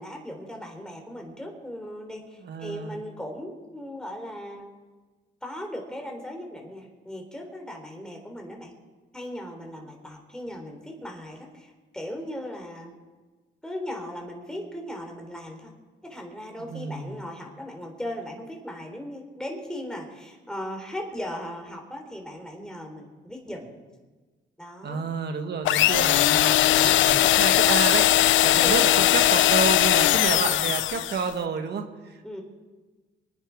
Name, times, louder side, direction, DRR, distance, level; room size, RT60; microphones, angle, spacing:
voice 1, 0.0-4.7 5.4-8.7 9.1-12.9 13.6-15.7 16.0-23.7 24.6-25.0 28.4-29.1 30.3-30.5 32.2-32.4, equal, 5° left, 2 dB, 3.6 m, -38 dB
voice 2, 2.4-3.0 16.6-17.2 24.8-32.2, right 5 dB, 55° right, 6 dB, 1.7 m, -30 dB
sound 1, 25.6-31.3, left 14 dB, 75° left, 0.5 m, -20 dB
24.0 x 10.0 x 4.7 m, 1.3 s
cardioid pair, 90°, 20 cm